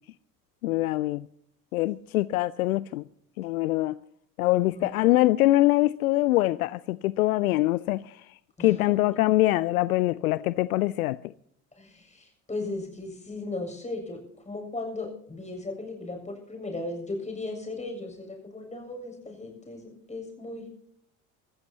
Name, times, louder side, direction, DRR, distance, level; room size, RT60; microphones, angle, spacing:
voice 1, 0.6-1.3 1.7-3.1 3.4-4.0 4.4-11.2, left 17 dB, 70° left, 0.6 m, -24 dB
voice 2, 4.7-5.2 8.6-8.9 11.8-14.2 14.5-20.7, left 2 dB, 15° left, 7.2 m, -37 dB
25.0 x 14.0 x 2.8 m
figure-of-eight pair, 65°, 46 cm